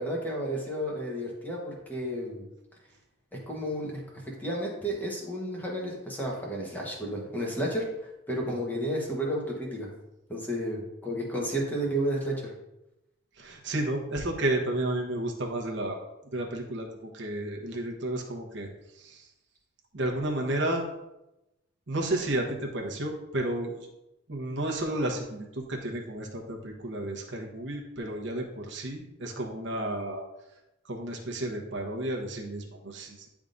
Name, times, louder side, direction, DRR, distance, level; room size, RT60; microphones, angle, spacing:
voice 1, 0.0-2.4 3.3-9.9 10.3-12.5, right 1 dB, 10° left, -2 dB, 1.2 m, -32 dB
voice 2, 13.4-16.0 16.3-19.3 19.9-20.9 21.9-23.9 24.3-30.2 30.8-33.3, right 1 dB, 60° right, 0 dB, 1.1 m, -32 dB
9.8 x 3.6 x 2.6 m, 0.93 s
head